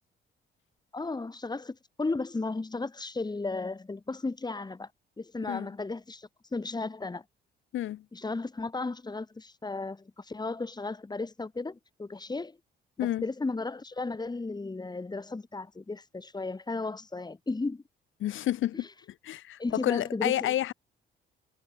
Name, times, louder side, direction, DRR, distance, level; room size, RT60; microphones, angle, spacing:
voice 1, 0.9-4.9 5.2-7.2 8.1-12.6 13.0-17.8 19.6-20.5, left 3 dB, 20° left, 3.9 m, -35 dB
voice 2, 7.7-8.1 13.0-13.2 18.2-18.9 19.2-20.7, left 13 dB, 80° left, 7.0 m, -30 dB
cardioid pair, 90°, 20 cm